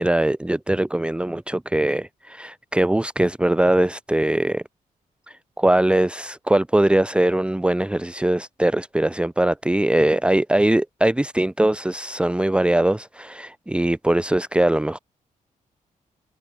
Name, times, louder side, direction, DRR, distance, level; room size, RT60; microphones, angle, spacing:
voice 1, 0.0-4.6 5.6-15.0, right 1 dB, 5° right, 1.2 m, -21 dB
cardioid pair, 110°, 14 cm